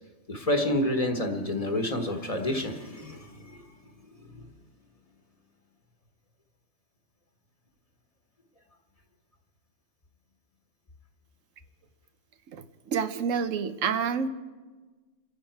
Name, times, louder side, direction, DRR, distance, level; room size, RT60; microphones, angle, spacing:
voice 1, 0.3-3.7 4.3-4.4, left 1 dB, 30° left, 4 dB, 1.2 m, -29 dB
voice 2, 12.5-14.3, right 6 dB, 85° right, 10 dB, 1.1 m, -28 dB
26.5 x 10.0 x 4.6 m, 1.3 s
omnidirectional pair, 1.3 m